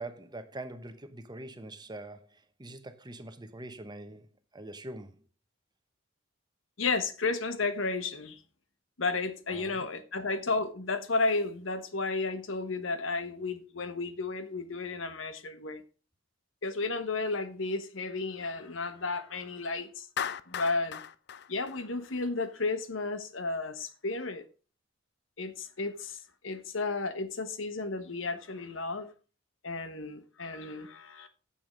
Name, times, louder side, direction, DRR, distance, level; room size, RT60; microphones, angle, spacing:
voice 1, 0.0-4.3 4.5-5.1 9.5-9.9, right 2 dB, 20° right, 1.0 m, -43 dB
voice 2, 6.8-8.4 9.0-15.8 16.6-20.1 20.5-21.0 21.5-24.4 25.4-29.1 29.6-31.3, left 3 dB, 75° left, 1.3 m, -33 dB
Clapping, 20.2-22.5, left 8 dB, 60° left, 0.5 m, -37 dB
9.4 x 7.0 x 5.1 m
head